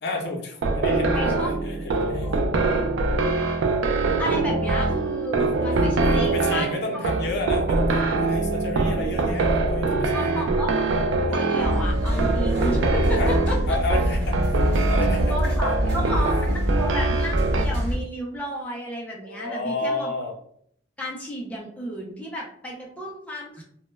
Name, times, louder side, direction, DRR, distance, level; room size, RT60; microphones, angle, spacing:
voice 1, 0.0-2.4 5.4-10.5 11.3-11.4 13.1-13.3 13.7-15.4 16.0-16.3 19.2-20.3, left 2 dB, 60° left, 1 dB, 0.6 m, -31 dB
sound 1, 0.6-17.6, right 3 dB, 85° right, 0.3 m, -24 dB
voice 2, 1.1-1.5 2.2-2.3 3.0-3.2 4.2-7.0 10.1-10.9 11.3-13.6 15.2-20.1 21.0-23.6, equal, 10° left, -3 dB, 0.3 m, -32 dB
sound 2, 11.6-18.0, equal, 70° right, 1.0 m, -24 dB
2.1 x 2.1 x 3.1 m, 0.65 s
head